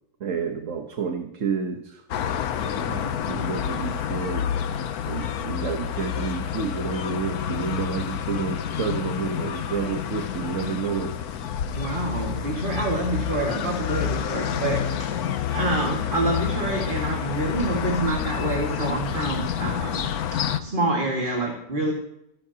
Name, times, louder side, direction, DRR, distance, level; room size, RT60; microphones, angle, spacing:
voice 1, 0.2-2.0 2.6-4.5 5.1-11.2 12.7-12.8, right 6 dB, 60° right, 4 dB, 1.4 m, -30 dB
sound 1, 2.1-20.6, left 9 dB, 85° left, 1.3 m, -28 dB
voice 2, 11.7-20.0 20.3-21.9, right 2 dB, 35° right, -1 dB, 2.1 m, -27 dB
25.5 x 12.0 x 2.9 m, 0.80 s
omnidirectional pair, 1.6 m